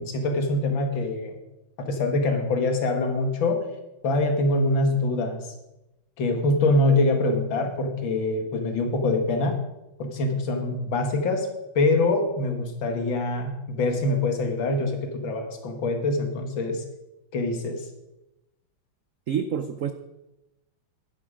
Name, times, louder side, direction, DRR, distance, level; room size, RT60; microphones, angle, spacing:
voice 1, 0.0-1.4 1.8-3.7 4.0-5.5 6.2-9.6 10.0-11.5 11.7-16.8 17.3-17.9, left 2 dB, 75° left, 5 dB, 2.3 m, -24 dB
voice 2, 19.3-19.9, right 8 dB, 75° right, 10 dB, 0.7 m, -27 dB
12.0 x 10.5 x 5.0 m, 0.96 s
omnidirectional pair, 2.2 m